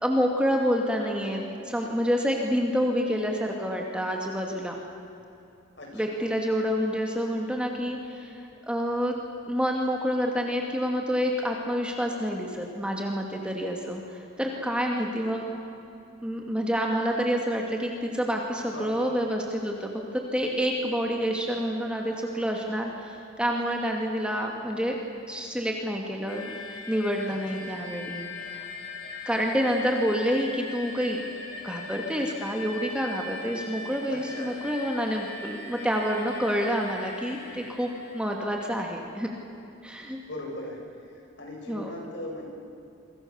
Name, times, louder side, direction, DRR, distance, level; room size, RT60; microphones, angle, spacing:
voice 1, 0.0-4.7 5.9-9.1 9.5-15.4 16.2-25.0 25.3-28.6 29.2-31.2 31.6-39.3 39.8-40.2 41.7-41.9, equal, 5° right, 0 dB, 2.4 m, -28 dB
voice 2, 5.8-6.2 18.7-19.2 27.3-27.7 33.6-33.7 34.1-34.6 40.2-40.8 41.4-42.4, left 1 dB, 55° left, 0 dB, 7.2 m, -39 dB
sound 1, 26.3-38.7, left 2 dB, 90° left, 5.5 m, -40 dB
28.0 x 25.0 x 7.2 m, 2.8 s
head